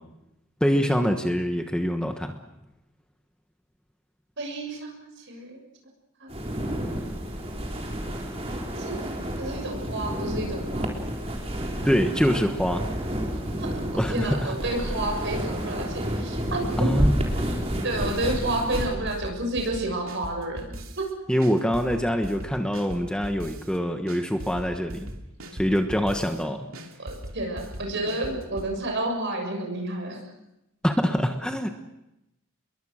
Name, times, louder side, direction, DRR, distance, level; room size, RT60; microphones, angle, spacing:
voice 1, 0.6-2.4 11.8-12.8 13.9-14.6 16.8-17.1 21.3-25.2 25.5-26.7 30.8-31.7, equal, 5° left, 5 dB, 1.2 m, -24 dB
voice 2, 4.4-5.6 6.2-7.0 8.7-9.0 9.4-11.0 13.3-16.9 17.8-20.6 21.0-21.1 27.0-30.2, right 1 dB, 55° right, 2 dB, 6.8 m, -30 dB
sound 1, 6.3-18.9, equal, 30° right, 3.9 m, -30 dB
sound 2, 18.1-18.4 18.7-21.1 21.4-23.8 24.1-26.4 26.7-28.7, equal, 75° right, 2.8 m, -39 dB
28.5 x 22.0 x 6.5 m, 0.90 s
head